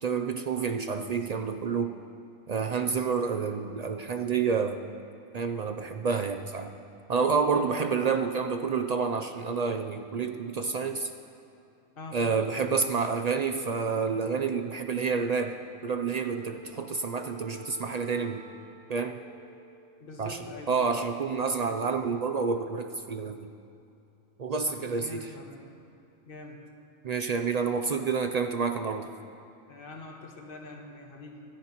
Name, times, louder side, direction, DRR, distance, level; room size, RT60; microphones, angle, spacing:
voice 1, 0.0-1.9 2.5-4.8 5.3-6.7 7.1-11.1 12.1-15.6 15.8-18.4 18.9-19.2 20.2-20.4 20.7-23.5 24.4-25.3 27.0-29.1, right 5 dB, 55° right, 6 dB, 0.4 m, -29 dB
voice 2, 7.5-8.0 12.0-12.2 20.0-20.7 24.5-25.7 26.3-26.6 29.7-31.4, left 3 dB, 50° left, 0 dB, 1.6 m, -44 dB
Wind instrument woodwind instrument, 15.9-20.4, left 1 dB, 80° right, 1.6 m, -50 dB
24.5 x 10.0 x 3.0 m, 2.6 s
omnidirectional pair, 1.2 m